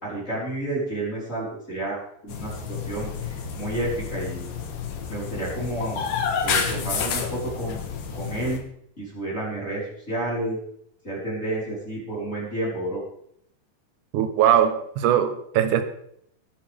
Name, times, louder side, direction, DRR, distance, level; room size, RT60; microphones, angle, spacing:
voice 1, 0.0-2.0 2.2-4.6 5.1-6.0 6.4-7.8 8.1-8.6 9.0-10.6 11.0-13.0, right 2 dB, 20° left, -7 dB, 5.0 m, -30 dB
sound 1, 2.3-8.6, left 6 dB, 80° left, 3.1 m, -30 dB
voice 2, 14.1-15.8, right 10 dB, 75° right, 9 dB, 2.5 m, -20 dB
19.5 x 9.6 x 3.6 m, 0.70 s
omnidirectional pair, 3.7 m